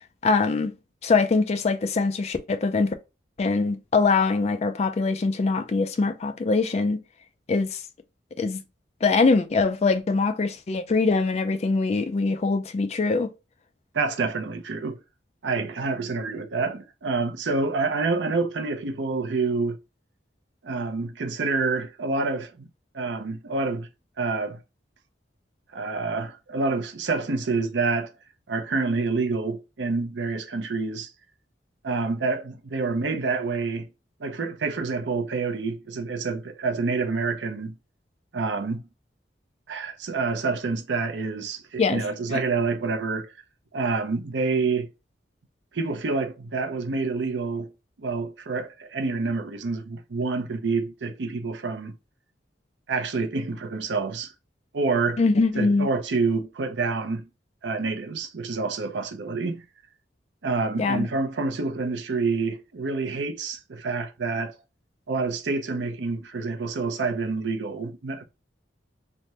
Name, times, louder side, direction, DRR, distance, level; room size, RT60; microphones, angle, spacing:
voice 1, 0.2-0.7 1.0-2.9 3.4-7.0 7.5-7.8 8.4-8.6 9.0-13.3 41.8-42.0 55.2-55.9 60.8-61.1, left 4 dB, 35° left, 0.3 m, -23 dB
voice 2, 13.9-15.0 15.4-19.8 20.6-22.6 22.9-23.9 24.2-24.6 25.7-28.1 28.5-31.1 31.8-33.9 34.2-37.7 38.3-38.8 39.7-43.3 43.7-44.9 45.7-47.7 48.0-51.9 52.9-54.3 54.7-55.2 55.6-57.3 57.6-59.6 60.4-64.5 65.1-68.2, right 4 dB, 75° right, 0.6 m, -27 dB
3.3 x 2.1 x 2.8 m
head